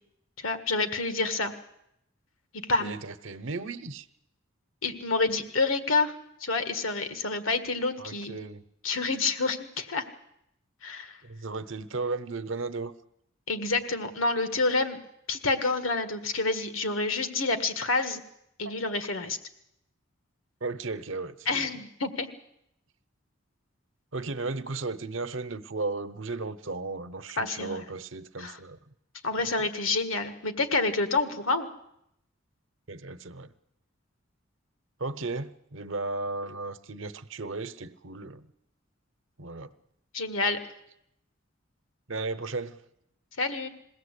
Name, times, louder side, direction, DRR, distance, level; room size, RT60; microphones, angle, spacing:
voice 1, 0.4-1.5 2.7-2.9 4.8-6.1 6.4-8.4 8.8-10.0 10.8-11.2 13.5-15.0 15.3-18.2 18.6-19.4 21.4-22.3 27.4-27.8 28.4-28.6 29.2-31.7 40.1-40.6 43.4-43.7, left 3 dB, 90° left, 1.7 m, -28 dB
voice 2, 2.8-4.1 8.0-8.6 11.2-12.9 18.6-18.8 20.6-21.7 24.1-28.8 29.4-29.5 32.9-33.5 35.0-38.5 39.4-39.7 42.1-42.8, right 3 dB, 75° right, 1.0 m, -35 dB
21.5 x 16.5 x 8.3 m
head